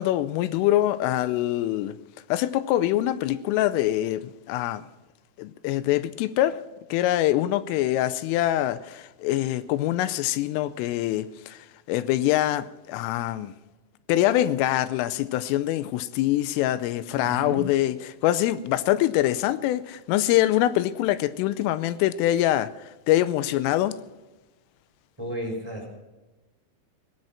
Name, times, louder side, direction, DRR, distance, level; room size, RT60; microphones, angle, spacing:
voice 1, 0.0-2.0 2.3-4.8 5.4-6.6 6.9-11.6 11.9-13.5 14.1-24.0, left 14 dB, 90° left, 3.3 m, -24 dB
voice 2, 17.1-17.7 25.2-25.8, equal, 5° right, 3.3 m, -32 dB
18.5 x 11.0 x 5.8 m
omnidirectional pair, 5.7 m